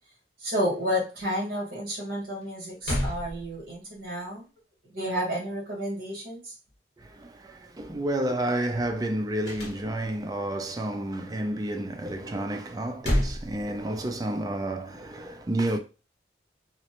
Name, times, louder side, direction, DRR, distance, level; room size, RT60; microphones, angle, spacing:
voice 1, 0.4-4.5 4.8-6.5, equal, 55° right, 1.3 m, -31 dB
sound 1, 2.4-2.5 2.8-4.0 9.4-10.3 12.7-14.3, equal, 60° left, 0.9 m, -30 dB
voice 2, 7.0-15.8, right 1 dB, 20° right, 0.3 m, -30 dB
2.5 x 2.0 x 2.9 m
head